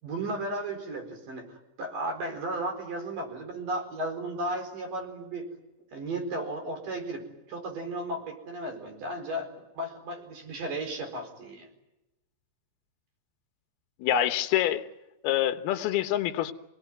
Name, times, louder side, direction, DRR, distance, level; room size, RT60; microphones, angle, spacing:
voice 1, 0.0-5.5 5.9-11.7, right 1 dB, 50° right, 6.0 m, -35 dB
voice 2, 14.0-14.9 15.2-16.5, left 11 dB, 70° left, 2.9 m, -26 dB
28.0 x 19.0 x 9.4 m
omnidirectional pair, 5.1 m